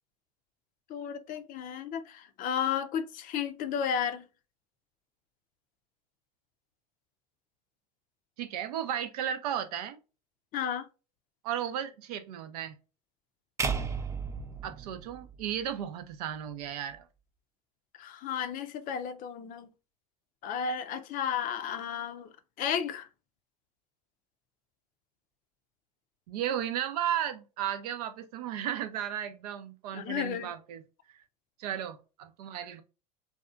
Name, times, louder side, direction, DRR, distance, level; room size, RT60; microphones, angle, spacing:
voice 1, 0.9-4.2 10.5-10.9 18.0-19.7 20.4-22.3 22.6-23.1 29.9-30.5, left 8 dB, 45° left, 0.5 m, -33 dB
voice 2, 8.4-10.0 11.4-12.8 14.6-17.1 26.3-30.8 31.1-31.2 31.6-32.8, right 10 dB, 75° right, 0.5 m, -34 dB
sound 1, 13.6-15.9, right 5 dB, 15° right, 0.4 m, -34 dB
2.7 x 2.3 x 2.3 m
hypercardioid pair, 85°, 20 cm